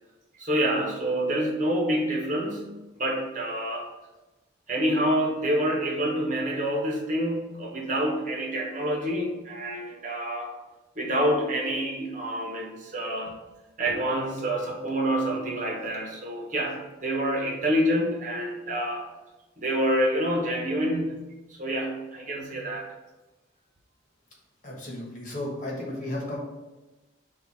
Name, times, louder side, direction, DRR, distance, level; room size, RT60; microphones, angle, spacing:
voice 1, 0.4-2.7 3.0-3.9 4.7-10.5 11.0-13.3 13.8-19.0 19.6-21.2 21.6-22.8, equal, 45° right, -1 dB, 1.3 m, -27 dB
voice 2, 24.6-26.4, left 1 dB, 45° left, -2 dB, 1.3 m, -34 dB
6.9 x 2.6 x 5.7 m, 1.1 s
head